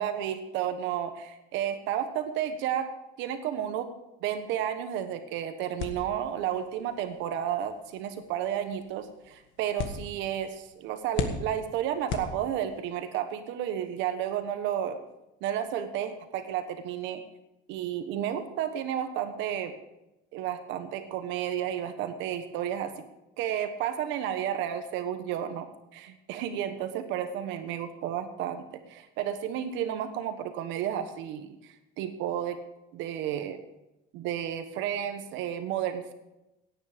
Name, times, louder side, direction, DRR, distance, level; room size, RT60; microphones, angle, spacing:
voice 1, 0.0-2.9 3.2-3.9 4.2-15.0 15.4-17.2 17.7-19.7 20.3-22.9 23.4-32.6 32.9-33.6 34.1-36.1, right 10 dB, 70° right, 9 dB, 1.3 m, -32 dB
sound 1, 5.8-12.9, left 6 dB, 75° left, 1.7 m, -39 dB
17.5 x 9.3 x 5.1 m, 0.94 s
cardioid pair, 160°, 20 cm